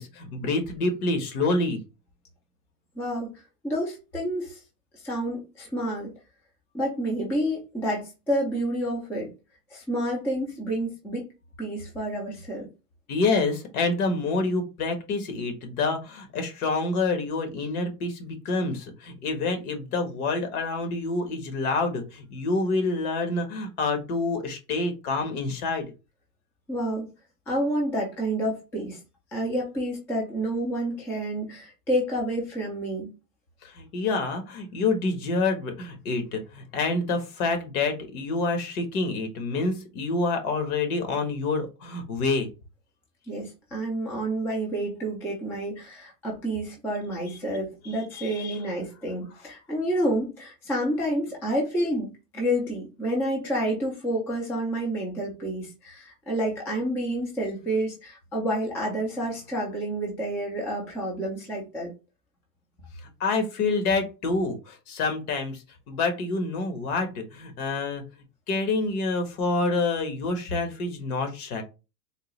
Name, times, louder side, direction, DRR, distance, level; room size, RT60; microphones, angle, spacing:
voice 1, 0.0-1.8 13.1-25.9 33.6-42.5 47.8-48.6 63.2-68.0 68.5-71.6, left 3 dB, 60° left, 6 dB, 1.3 m, -27 dB
voice 2, 3.0-3.3 3.6-4.6 4.9-6.1 6.7-9.3 9.7-11.2 11.6-12.7 26.7-27.1 27.5-29.0 29.3-33.1 43.3-61.9, right 1 dB, 5° left, -2 dB, 0.4 m, -29 dB
3.7 x 2.2 x 3.1 m, 0.28 s
supercardioid pair, 135°, 49 cm